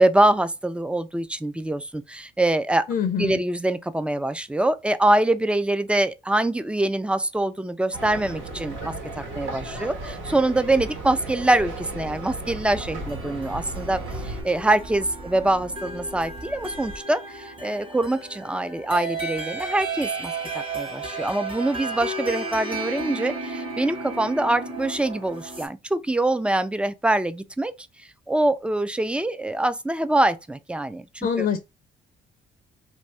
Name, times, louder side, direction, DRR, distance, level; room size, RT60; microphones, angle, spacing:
voice 1, 0.0-2.8 3.2-27.7 28.3-31.5, right 1 dB, 5° right, 0.3 m, -24 dB
voice 2, 2.9-3.4 31.2-31.6, left 7 dB, 50° left, 0.5 m, -24 dB
sound 1, 7.9-14.4, right 2 dB, 80° right, 1.4 m, -35 dB
sound 2, 11.6-17.0, right 1 dB, 50° right, 1.0 m, -43 dB
sound 3, 12.7-25.7, right 3 dB, 25° right, 1.2 m, -34 dB
2.6 x 2.6 x 3.3 m
cardioid pair, 90°, 20 cm